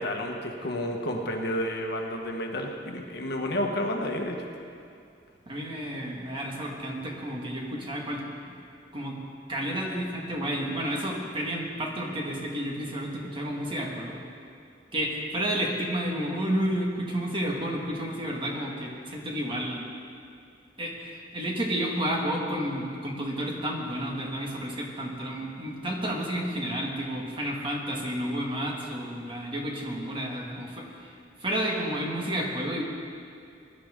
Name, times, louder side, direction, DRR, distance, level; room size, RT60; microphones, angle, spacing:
voice 1, 0.0-4.4, left 1 dB, 60° left, 1 dB, 1.4 m, -30 dB
voice 2, 5.5-8.2 8.9-9.2 9.5-14.1 14.9-19.8 20.8-31.1 31.4-32.8, equal, 30° right, -1 dB, 1.9 m, -31 dB
20.5 x 11.0 x 3.8 m, 2.5 s
head